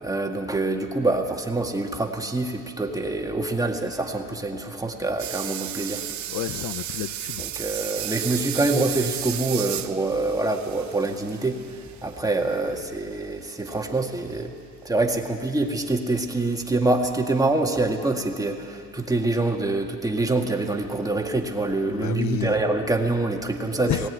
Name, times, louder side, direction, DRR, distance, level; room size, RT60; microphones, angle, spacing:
voice 1, 0.0-6.0 7.4-14.5 14.8-24.1, right 2 dB, 10° right, 3 dB, 1.7 m, -25 dB
disc grinder buzz alley Montreal Canada, 5.2-12.2 13.7-13.8, right 12 dB, 60° right, 0.9 m, -33 dB
voice 2, 6.3-7.4 21.9-22.6 23.7-24.1, left 12 dB, 55° left, 13 dB, 0.6 m, -30 dB
19.5 x 17.0 x 9.6 m, 2.4 s
cardioid pair, 125°, 33 cm